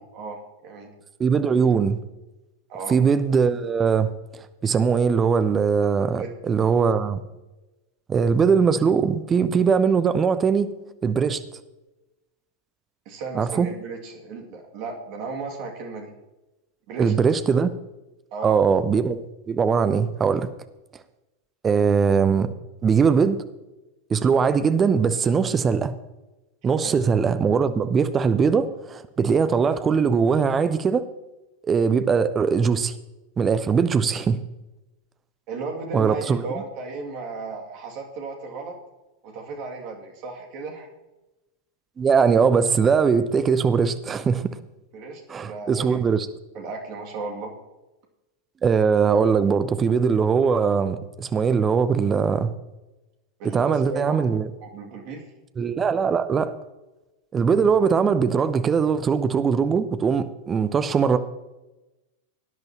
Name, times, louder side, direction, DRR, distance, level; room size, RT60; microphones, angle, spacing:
voice 1, 0.1-0.9 2.7-3.0 6.2-6.3 13.1-16.1 16.9-17.1 18.3-18.6 26.8-26.9 35.5-38.8 39.2-40.9 44.9-46.0 46.5-47.5 53.4-54.3 54.6-55.3, right 3 dB, 40° right, 1 dB, 2.4 m, -35 dB
voice 2, 1.2-2.0 2.9-4.1 4.6-7.2 8.1-10.7 11.0-11.6 13.3-13.7 17.0-17.7 18.4-19.2 19.5-20.5 21.6-22.5 22.8-23.4 24.1-25.9 26.6-31.0 31.6-32.9 33.4-34.4 35.9-36.4 42.0-44.6 45.3-46.3 48.6-52.5 53.5-54.5 55.6-56.5 57.3-61.2, right 6 dB, 20° right, 12 dB, 0.7 m, -21 dB
18.5 x 10.5 x 2.9 m, 1.0 s
figure-of-eight pair, 90°, 0 cm